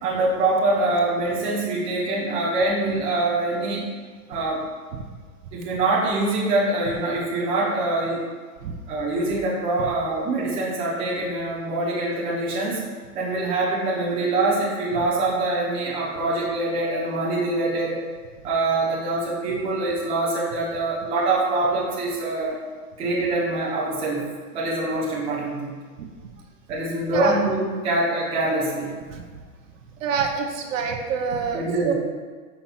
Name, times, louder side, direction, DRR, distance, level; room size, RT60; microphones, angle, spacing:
voice 1, 0.0-3.9 4.3-4.6 5.5-8.2 8.9-12.8 13.1-18.0 18.4-22.6 23.0-25.8 26.7-28.9 31.5-31.9, right 2 dB, 10° right, -6 dB, 0.7 m, -24 dB
voice 2, 30.0-31.9, right 6 dB, 55° right, 2 dB, 0.8 m, -26 dB
5.7 x 3.4 x 5.8 m, 1.5 s
supercardioid pair, 170°, 46 cm